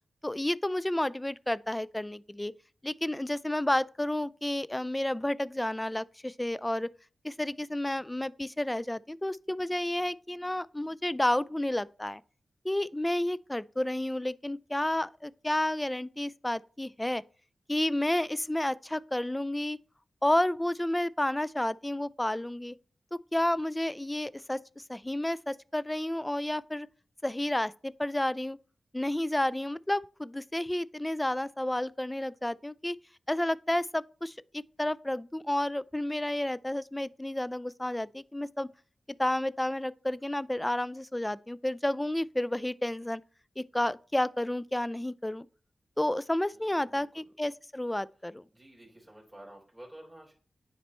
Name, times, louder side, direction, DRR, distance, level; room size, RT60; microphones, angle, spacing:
voice 1, 0.2-2.5 2.8-6.9 7.2-12.2 12.6-17.2 17.7-19.8 20.2-22.8 23.3-26.9 27.2-28.6 28.9-33.0 33.3-38.7 39.2-43.2 43.6-45.5 46.0-48.4, left 1 dB, 15° left, 0.3 m, -31 dB
voice 2, 46.5-47.3 48.5-50.3, right 1 dB, 10° right, 3.7 m, -51 dB
10.0 x 4.2 x 3.0 m
cardioid pair, 55°, 0 cm